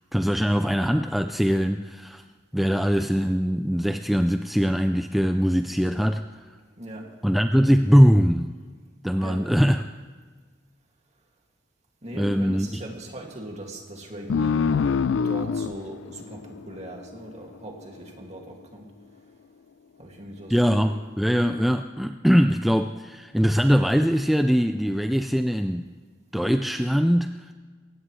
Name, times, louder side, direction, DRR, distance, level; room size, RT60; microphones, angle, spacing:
voice 1, 0.1-2.2 2.5-6.2 7.2-8.5 9.0-9.9 12.1-12.8 20.5-25.8 26.3-27.5, equal, ahead, 7 dB, 0.4 m, -22 dB
voice 2, 6.7-7.1 9.2-9.4 12.0-18.9 20.0-20.9, right 1 dB, 35° right, 0 dB, 2.3 m, -39 dB
sound 1, 14.3-17.5, left 6 dB, 85° left, 0.4 m, -25 dB
22.0 x 18.0 x 3.2 m, 1.5 s
head